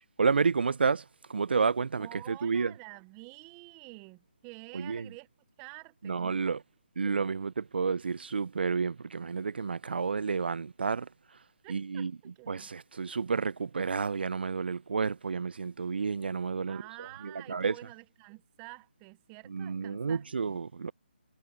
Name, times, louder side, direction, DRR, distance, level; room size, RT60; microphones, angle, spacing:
voice 1, 0.2-1.0 1.3-2.7 4.7-5.1 6.0-6.6 7.0-11.1 11.7-12.1 12.5-16.8 17.2-17.7 19.5-20.9, right 5 dB, 70° right, 0.5 m, -30 dB
voice 2, 2.0-5.3 5.6-6.6 11.6-12.7 16.7-20.6, right 28 dB, 15° right, 0.5 m, -49 dB
figure-of-eight pair, 155°, 6 cm